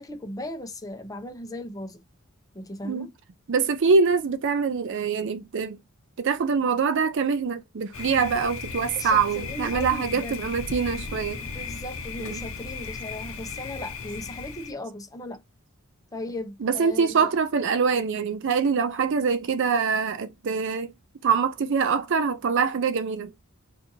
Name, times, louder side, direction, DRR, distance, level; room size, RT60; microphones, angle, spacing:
voice 1, 0.0-2.0 2.5-3.1 8.9-10.4 11.4-15.4 16.1-17.2, left 1 dB, 15° left, 0.7 m, -37 dB
voice 2, 3.5-5.8 6.2-11.4 12.2-12.5 16.6-20.9 21.2-23.3, right 5 dB, 55° right, 0.4 m, -24 dB
Thunder, 7.9-14.7, left 4 dB, 65° left, 0.7 m, -36 dB
4.3 x 2.5 x 2.6 m
head